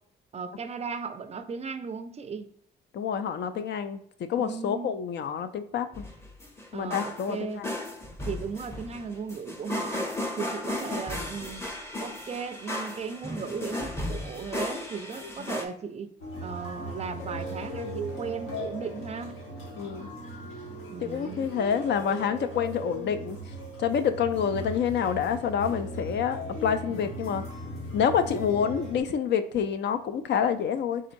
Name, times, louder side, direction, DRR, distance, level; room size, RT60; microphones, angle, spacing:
voice 1, 0.3-2.5 4.4-5.0 6.7-7.6 8.3-10.1 10.4-11.6 12.0-16.1 16.4-19.4 20.9-21.5 26.9-27.2, right 5 dB, 35° right, 0.4 m, -36 dB
voice 2, 2.9-5.9 6.7-7.7 15.2-15.3 19.8-20.1 21.0-23.4 23.8-27.4 27.9-31.0, left 7 dB, 60° left, 0.4 m, -27 dB
sound 1, 5.9-15.7, left 1 dB, 15° left, 0.7 m, -35 dB
sound 2, 16.2-29.0, right 1 dB, 80° left, 1.3 m, -38 dB
4.1 x 3.7 x 2.6 m
cardioid pair, 90°, 20 cm